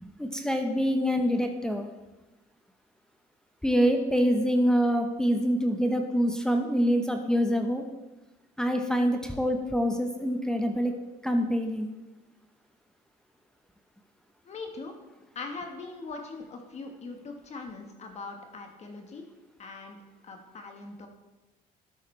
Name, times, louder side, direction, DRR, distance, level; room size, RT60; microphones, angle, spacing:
voice 1, 0.0-1.9 3.6-7.8 8.6-10.9 11.2-11.9, equal, 5° left, 4 dB, 0.8 m, -25 dB
voice 2, 14.4-14.9 15.3-19.3 19.6-20.0 20.2-21.1, left 3 dB, 40° left, 3 dB, 1.4 m, -41 dB
12.0 x 8.6 x 3.3 m, 1.1 s
cardioid pair, 110°, 17 cm